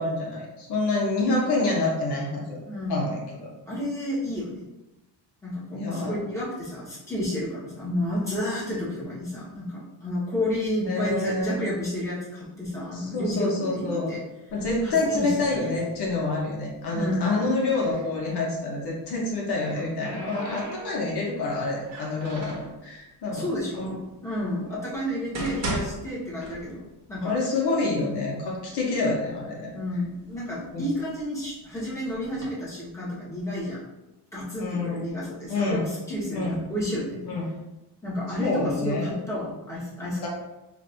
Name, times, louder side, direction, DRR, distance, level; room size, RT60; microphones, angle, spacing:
voice 1, 0.0-2.6 2.9-3.2 5.7-6.1 10.9-11.7 12.9-14.2 14.5-23.5 23.7-23.9 24.7-24.8 27.2-29.7 30.7-30.8 34.6-35.1 35.5-35.8 36.3-36.6 37.3-37.5 38.4-39.1 40.2-40.3, left 2 dB, 65° left, -3 dB, 1.0 m, -27 dB
voice 2, 2.7-3.0 3.7-4.7 5.4-14.2 14.8-15.3 16.9-17.3 23.3-23.9 24.2-27.3 29.7-33.8 34.3-37.2 38.0-40.3, left 1 dB, 5° left, -9 dB, 1.4 m, -31 dB
sound 1, 14.5-16.4 16.7-18.1 19.2-21.3 21.8-22.7 23.5-23.6 24.3-24.4 25.0-27.0 27.3-27.4 28.1-28.2 28.6-29.3 29.8-31.5 32.1-32.5, right 1 dB, 40° right, 1.0 m, -37 dB
5.1 x 2.6 x 2.6 m, 0.99 s
cardioid pair, 150°, 43 cm